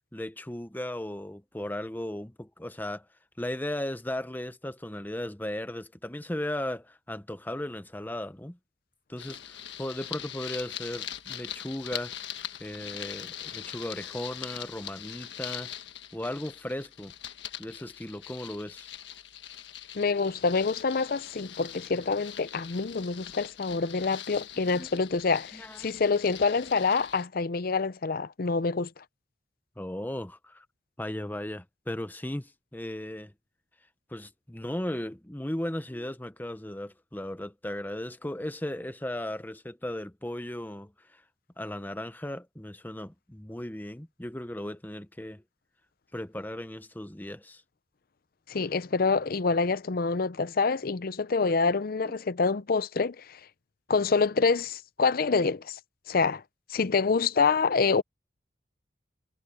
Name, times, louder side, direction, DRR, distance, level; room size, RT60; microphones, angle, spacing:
voice 1, 0.1-3.0 3.4-8.6 9.1-12.1 12.6-15.7 16.1-17.1 17.6-18.9 24.7-24.9 25.5-26.0 29.8-30.6 31.0-33.3 34.1-41.2 41.6-45.4 46.1-47.6, left 1 dB, 10° left, 0.9 m, -36 dB
sound 1, 9.2-27.2, left 11 dB, 75° left, 1.5 m, -42 dB
voice 2, 19.9-29.0 48.5-53.4 53.9-55.8 56.1-56.4 56.7-58.0, left 4 dB, 50° left, 0.6 m, -26 dB
head